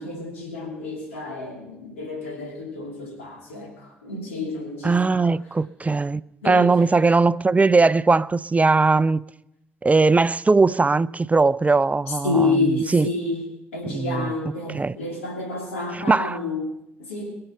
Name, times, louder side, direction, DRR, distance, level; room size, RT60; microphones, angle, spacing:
voice 1, 0.0-5.3 5.8-5.9 6.4-6.7 12.1-17.3, left 3 dB, 85° left, 2.9 m, -29 dB
voice 2, 4.8-9.2 9.8-13.1 13.8-14.3 14.7-15.0 15.9-16.4, right 3 dB, 20° right, 0.5 m, -20 dB
22.5 x 7.8 x 5.7 m
figure-of-eight pair, 45°, 7 cm